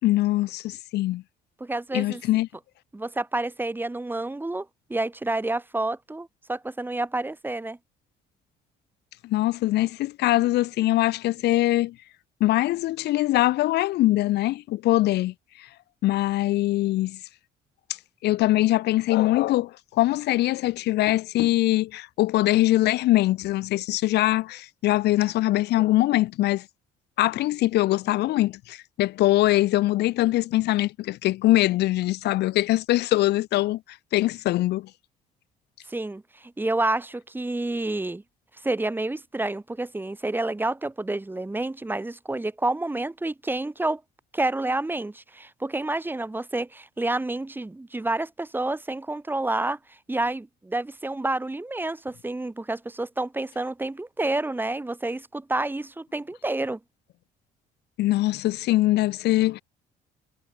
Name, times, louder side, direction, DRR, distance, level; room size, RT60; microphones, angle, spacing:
voice 1, 0.0-1.2 1.9-2.5 9.2-12.0 12.4-15.7 16.0-17.2 18.2-26.7 27.2-34.9 58.0-59.6, left 16 dB, 80° left, 4.8 m, -22 dB
voice 2, 1.6-2.2 2.9-7.8 35.9-38.2 38.6-44.0 44.3-56.8, right 2 dB, 10° right, 4.4 m, -29 dB
cardioid pair, 110°, 17 cm